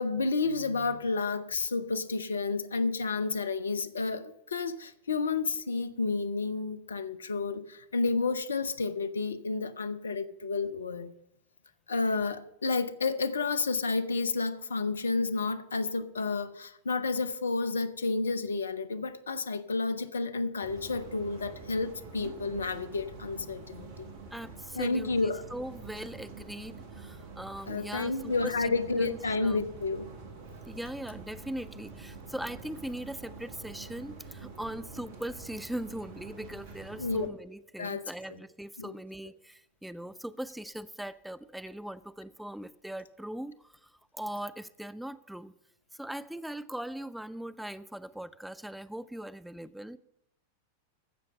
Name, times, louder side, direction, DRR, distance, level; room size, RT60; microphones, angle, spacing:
voice 1, 0.0-11.1 11.9-24.1 24.7-25.4 27.7-30.1 37.0-37.3 37.8-38.0 38.8-39.0, left 3 dB, 70° left, 13 dB, 0.6 m, -31 dB
sound 1, 20.6-37.3, right 4 dB, 50° right, 1.6 m, -46 dB
voice 2, 24.3-29.6 30.7-45.5 45.9-50.0, right 1 dB, ahead, 14 dB, 0.3 m, -40 dB
15.0 x 6.3 x 5.5 m, 0.83 s
figure-of-eight pair, 90°, 0 cm